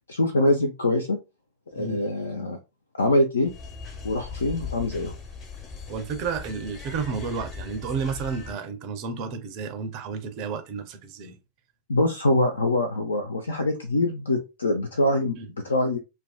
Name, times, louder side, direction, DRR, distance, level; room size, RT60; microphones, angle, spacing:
voice 1, 0.1-1.2 1.7-2.6 3.0-3.5 4.0-5.1 11.9-15.4 15.6-16.0, left 2 dB, 75° left, 0.4 m, -24 dB
sound 1, 3.5-8.5, left 5 dB, 35° left, 1.0 m, -39 dB
voice 2, 5.9-11.4 15.4-15.5, right 5 dB, 45° right, 0.4 m, -31 dB
2.4 x 2.2 x 2.3 m
figure-of-eight pair, 90°, 0 cm